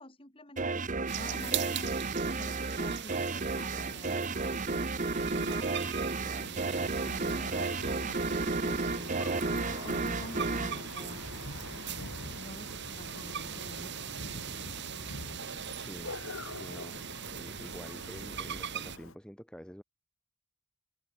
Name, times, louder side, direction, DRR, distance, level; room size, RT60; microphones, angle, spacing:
voice 1, 0.0-2.0 2.4-5.7 6.2-9.4 9.8-14.0, left 1 dB, 25° left, 6.1 m, -48 dB
sound 1, 0.6-11.8, right 3 dB, 35° right, 1.0 m, -33 dB
sound 2, 1.1-19.0, right 7 dB, 55° right, 2.3 m, -40 dB
Thunder, 6.9-19.1, left 2 dB, 70° left, 4.5 m, -46 dB
voice 2, 15.7-16.2 16.5-19.8, equal, 5° left, 4.1 m, -48 dB
head